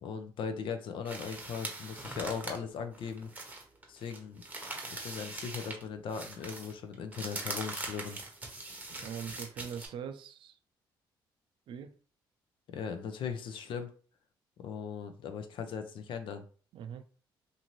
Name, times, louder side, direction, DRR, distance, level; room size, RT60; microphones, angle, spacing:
voice 1, 0.0-3.3 3.9-4.4 4.9-8.2 12.7-13.9 14.6-16.4, left 6 dB, 70° left, 8 dB, 0.5 m, -38 dB
sound 1, 1.1-5.8 6.1-9.9, right 2 dB, 15° right, 0.8 m, -42 dB
voice 2, 9.0-10.6 11.7-11.9 16.7-17.0, right 8 dB, 70° right, 8 dB, 0.4 m, -42 dB
2.7 x 2.6 x 3.0 m, 0.40 s
cardioid pair, 90°, 9 cm